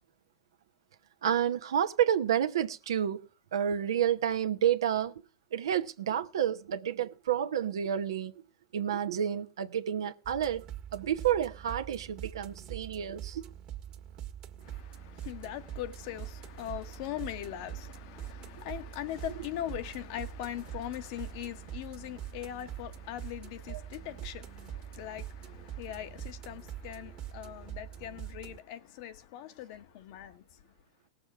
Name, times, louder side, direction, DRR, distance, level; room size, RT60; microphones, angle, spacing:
voice 1, 1.2-3.2 3.5-5.1 5.5-8.3 8.7-10.7 10.9-13.4 23.7-23.8, right 9 dB, 75° right, 0.9 m, -30 dB
sound 1, 10.2-28.6, right 11 dB, 40° right, 1.5 m, -44 dB
voice 2, 14.6-30.4, left 12 dB, 55° left, 1.1 m, -41 dB
18.0 x 7.2 x 4.8 m
hypercardioid pair, 105°, 2 cm